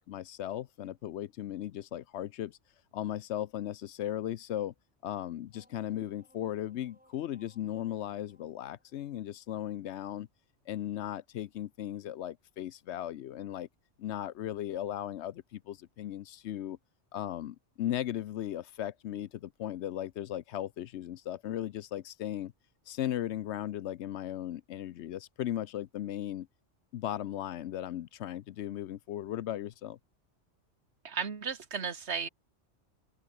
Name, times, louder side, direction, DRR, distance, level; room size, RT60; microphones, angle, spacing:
voice 1, 0.0-2.6 2.9-4.7 5.0-10.3 10.7-13.7 14.0-16.8 17.1-22.5 22.9-26.5 26.9-30.0, left 12 dB, 75° left, 0.9 m, -37 dB
sound 1, 5.5-9.8, equal, 5° right, 7.9 m, -65 dB
voice 2, 31.0-32.3, right 6 dB, 65° right, 1.9 m, -34 dB
open air
omnidirectional pair, 1.2 m